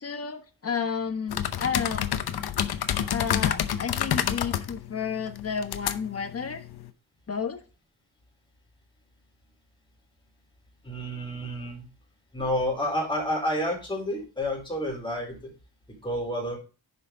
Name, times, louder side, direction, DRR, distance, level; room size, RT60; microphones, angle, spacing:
voice 1, 0.0-2.1 3.1-6.6 7.3-7.6, left 6 dB, 40° left, 7 dB, 1.3 m, -31 dB
sound 1, 1.3-6.9, left 10 dB, 80° left, 0.8 m, -29 dB
voice 2, 10.8-11.9 12.3-15.5 16.0-16.6, equal, 15° left, -1 dB, 4.0 m, -29 dB
10.0 x 5.7 x 3.9 m, 0.33 s
wide cardioid pair, 130°, 38 cm